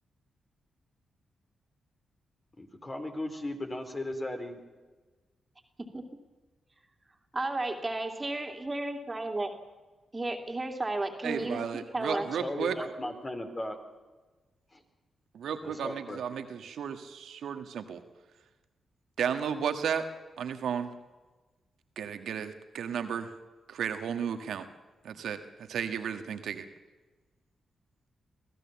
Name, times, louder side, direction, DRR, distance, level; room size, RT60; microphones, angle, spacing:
voice 1, 2.6-4.6 12.1-13.8 14.7-14.8 15.6-16.2, left 1 dB, 35° left, 5 dB, 4.0 m, -36 dB
voice 2, 7.3-9.5 10.1-11.6 11.9-12.3, right 2 dB, 30° right, 4 dB, 2.8 m, -33 dB
voice 3, 11.2-12.8 15.3-18.0 19.2-20.0 20.4-20.9 22.0-23.3 23.7-24.6 25.0-26.7, right 7 dB, 75° right, 7 dB, 1.5 m, -33 dB
24.0 x 15.5 x 7.2 m, 1.3 s
hypercardioid pair, 40°, 0 cm